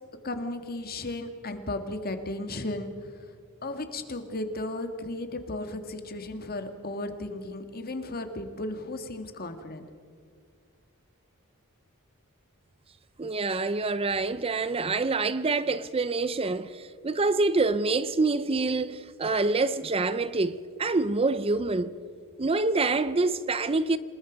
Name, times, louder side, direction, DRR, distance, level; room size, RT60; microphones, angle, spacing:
voice 1, 0.2-2.9 3.6-9.9, left 2 dB, 45° left, 2.0 m, -35 dB
voice 2, 13.2-21.9 22.4-24.0, right 3 dB, 25° right, 0.5 m, -26 dB
27.5 x 20.5 x 5.2 m
head